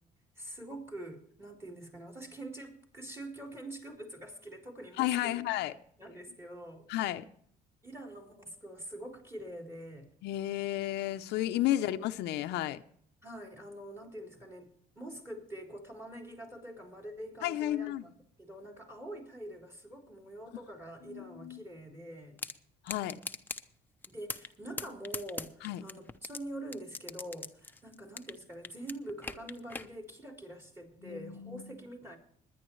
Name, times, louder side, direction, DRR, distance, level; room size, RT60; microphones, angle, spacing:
voice 1, 0.4-5.4 6.0-6.9 7.8-10.1 11.7-11.9 13.2-14.7 15.0-18.1 18.4-22.4 24.1-32.2, right 1 dB, 15° right, 4.0 m, -45 dB
voice 2, 5.0-5.7 6.9-7.2 10.2-12.8 17.4-18.0 21.1-21.6 22.8-23.2 25.6-25.8 31.0-31.7, left 14 dB, 80° left, 0.7 m, -32 dB
sound 1, 22.4-22.5 22.9-23.6 24.0-24.5 24.8-26.4 26.7-28.4 28.6-29.9, left 3 dB, 10° left, 0.8 m, -39 dB
21.0 x 10.5 x 3.2 m
cardioid pair, 110°, 17 cm